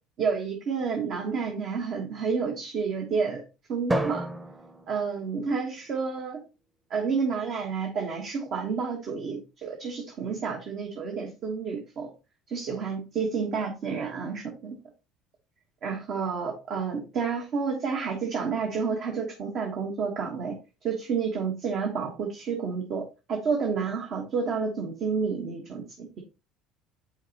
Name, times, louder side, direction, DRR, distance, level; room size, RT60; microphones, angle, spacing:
voice 1, 0.2-3.4 3.7-4.2 4.9-6.4 6.9-12.1 12.5-14.8 15.8-20.6 20.8-26.2, right 5 dB, 50° right, 1 dB, 1.2 m, -30 dB
Drum, 3.9-6.2, right 1 dB, 15° right, 0.9 m, -32 dB
8.7 x 4.2 x 2.9 m, 0.29 s
figure-of-eight pair, 65°, 0 cm